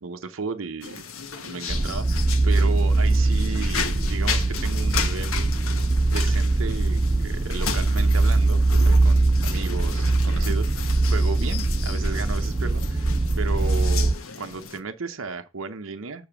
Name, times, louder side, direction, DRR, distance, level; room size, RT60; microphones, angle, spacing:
voice 1, 0.0-1.0 1.4-2.2 2.4-5.5 6.1-13.1 13.4-16.3, right 4 dB, 70° right, 0.8 m, -34 dB
sound 1, 0.8-14.8, left 6 dB, 75° left, 1.2 m, -35 dB
sound 2, 1.7-14.1, right 2 dB, 15° right, 0.3 m, -21 dB
6.9 x 6.4 x 5.9 m
head